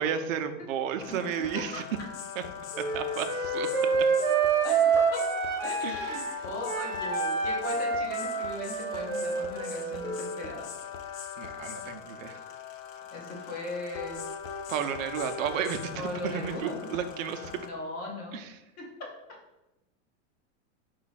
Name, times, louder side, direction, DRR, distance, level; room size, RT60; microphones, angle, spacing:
voice 1, 0.0-1.8 2.4-2.5 2.8-3.9 5.8-6.4 11.4-12.4 14.7-17.5 18.3-18.6, right 8 dB, 80° right, 8 dB, 0.6 m, -33 dB
sound 1, 1.0-17.7, left 7 dB, 85° left, 0.6 m, -41 dB
Wind instrument woodwind instrument, 2.7-6.3 6.6-10.4, right 5 dB, 10° right, 0.5 m, -28 dB
voice 2, 4.6-5.2 5.6-10.7 13.1-14.2 16.0-16.9 17.5-18.4 18.8-19.1, left 2 dB, 25° left, -1 dB, 0.7 m, -38 dB
4.6 x 2.4 x 4.0 m, 0.96 s
supercardioid pair, 175°, 39 cm